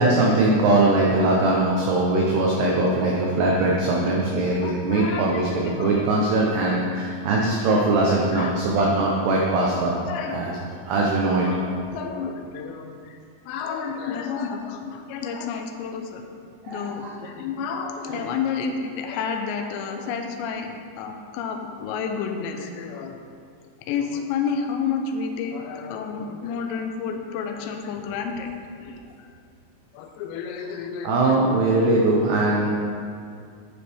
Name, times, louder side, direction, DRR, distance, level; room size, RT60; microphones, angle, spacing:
voice 1, 0.0-10.0 10.3-10.6 10.9-11.5 16.6-17.1 18.1-18.3 31.0-32.7, right 2 dB, 80° right, -2 dB, 2.4 m, -21 dB
voice 2, 4.6-5.4 5.8-6.0 6.5-6.6 7.9-8.0 8.3-8.5 10.1-10.4 11.5-11.6 11.9-13.2 13.5-16.2 16.7-20.7 21.0-23.2 23.9-28.5 28.8-29.3 29.9-31.4, left 6 dB, 90° left, 4 dB, 2.5 m, -30 dB
11.5 x 9.7 x 3.6 m, 2.3 s
omnidirectional pair, 6.0 m